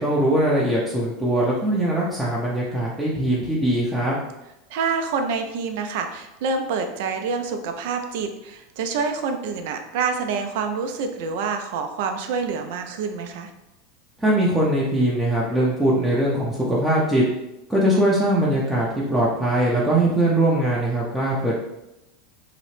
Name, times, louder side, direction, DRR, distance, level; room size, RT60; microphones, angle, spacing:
voice 1, 0.0-4.2 14.2-17.2 17.7-21.6, right 1 dB, 5° right, -7 dB, 0.5 m, -21 dB
voice 2, 4.7-13.5, right 5 dB, 70° right, 6 dB, 0.4 m, -27 dB
2.8 x 2.0 x 3.1 m, 0.91 s
hypercardioid pair, 110°, 0 cm